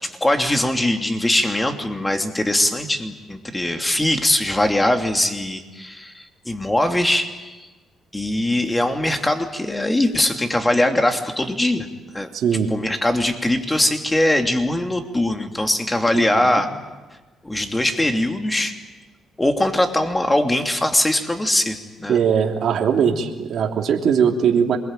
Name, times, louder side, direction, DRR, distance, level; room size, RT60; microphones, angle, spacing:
voice 1, 0.0-7.7 8.1-11.9 12.1-12.3 12.7-16.7 17.4-18.8 19.4-22.2, left 1 dB, 15° left, 5 dB, 3.0 m, -21 dB
voice 2, 12.3-12.7 16.1-16.2 22.1-24.8, right 7 dB, 65° right, 2 dB, 3.1 m, -19 dB
27.5 x 21.5 x 9.1 m, 1.2 s
cardioid pair, 90°, 0 cm